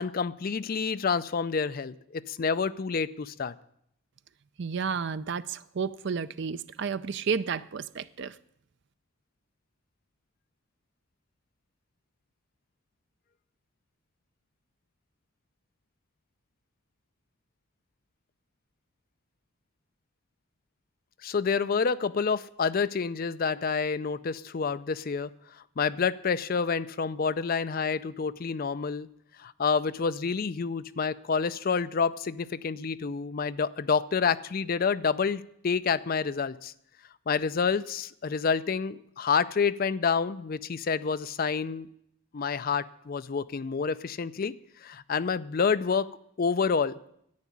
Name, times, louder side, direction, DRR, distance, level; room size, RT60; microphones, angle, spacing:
voice 1, 0.0-3.5 21.2-25.3 25.8-29.1 29.4-36.7 37.3-41.9 42.3-44.5 44.8-46.1 46.4-47.0, left 5 dB, 45° left, 0.4 m, -28 dB
voice 2, 4.6-8.4, right 5 dB, 55° right, 0.5 m, -32 dB
10.5 x 8.3 x 9.9 m
head